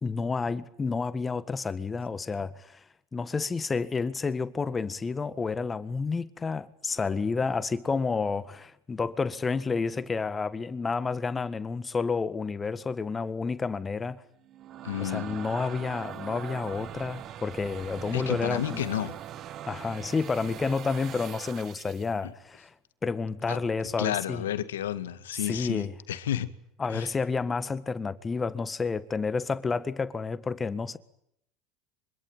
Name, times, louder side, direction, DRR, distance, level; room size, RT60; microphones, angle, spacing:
voice 1, 0.0-2.8 3.1-14.2 15.0-18.8 19.7-22.7 23.0-24.4 25.4-25.9 26.8-31.0, left 4 dB, 20° left, 1.6 m, -30 dB
sound 1, 14.4-22.1, right 11 dB, 50° right, 1.5 m, -41 dB
voice 2, 14.8-15.4 18.1-19.2 22.2-22.3 23.5-23.6 24.0-26.5 26.9-27.1, left 11 dB, 90° left, 2.0 m, -31 dB
26.0 x 25.0 x 9.2 m
hypercardioid pair, 90°, 0 cm